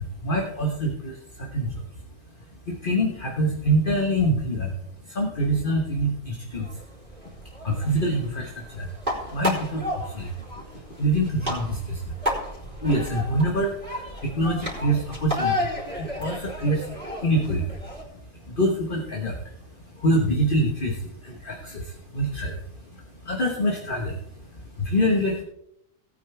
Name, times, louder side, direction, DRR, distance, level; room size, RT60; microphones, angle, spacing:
voice 1, 0.0-1.9 2.4-4.8 5.0-6.8 7.4-8.9 9.3-12.2 12.6-25.4, right 1 dB, 40° left, 1 dB, 1.5 m, -26 dB
sound 1, 6.5-18.0, left 1 dB, 40° right, 3.8 m, -33 dB
17.5 x 9.2 x 3.5 m, 0.76 s
omnidirectional pair, 1.4 m